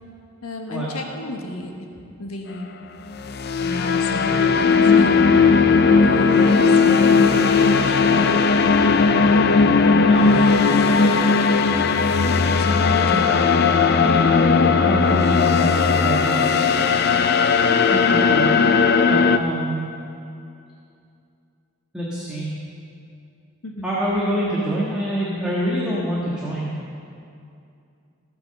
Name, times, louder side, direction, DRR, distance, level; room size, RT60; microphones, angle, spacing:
voice 1, 0.4-1.7 2.2-2.7 3.6-5.1 6.0-8.3 12.2-13.2 23.6-24.0, left 2 dB, 80° left, 2 dB, 1.4 m, -32 dB
sound 1, 3.1-19.4, left 5 dB, 45° left, 0.5 m, -17 dB
voice 2, 9.9-10.3 12.7-13.3 14.0-16.4 17.8-18.5 19.1-19.9 21.9-22.5 23.8-26.7, right 1 dB, 5° right, -8 dB, 1.5 m, -26 dB
17.5 x 6.2 x 6.7 m, 2.5 s
head